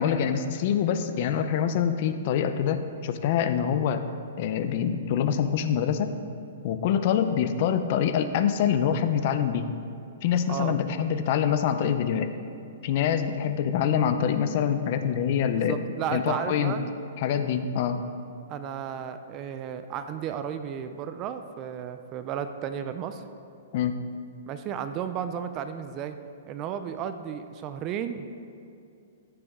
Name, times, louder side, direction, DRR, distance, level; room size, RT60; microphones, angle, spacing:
voice 1, 0.0-4.0 4.4-6.1 6.6-9.7 10.2-12.3 12.8-15.8 16.1-16.8 17.2-18.0 23.7-24.0, left 8 dB, 35° left, 10 dB, 0.5 m, -25 dB
voice 2, 15.6-16.9 18.5-23.2 24.5-26.2 26.5-28.3, right 8 dB, 20° right, 9 dB, 0.3 m, -33 dB
15.0 x 6.8 x 3.6 m, 2.5 s
hypercardioid pair, 170°, 0 cm